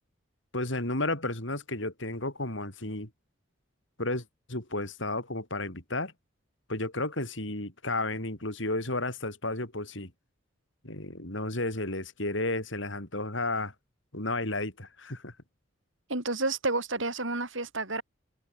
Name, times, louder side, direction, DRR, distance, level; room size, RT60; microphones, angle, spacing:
voice 1, 0.5-3.1 4.0-4.2 4.5-6.1 6.7-10.1 10.8-13.7 14.1-15.3, left 2 dB, 70° left, 6.3 m, -32 dB
voice 2, 16.1-18.0, right 2 dB, 70° right, 6.5 m, -30 dB
head